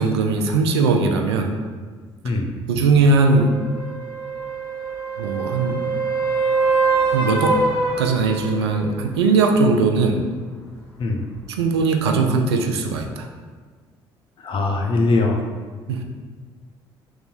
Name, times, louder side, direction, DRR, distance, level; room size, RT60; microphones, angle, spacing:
voice 1, 0.0-1.5 2.7-3.6 5.2-5.8 7.1-7.6 8.0-10.2 11.6-13.3 15.9-16.0, right 4 dB, 75° right, 3 dB, 0.4 m, -19 dB
sound 1, 3.2-8.9 13.0-13.1, right 3 dB, 85° left, 0.6 m, -24 dB
voice 2, 14.4-15.4, left 3 dB, 40° left, 2 dB, 0.6 m, -21 dB
3.3 x 2.4 x 4.1 m, 1.5 s
figure-of-eight pair, 50°, 14 cm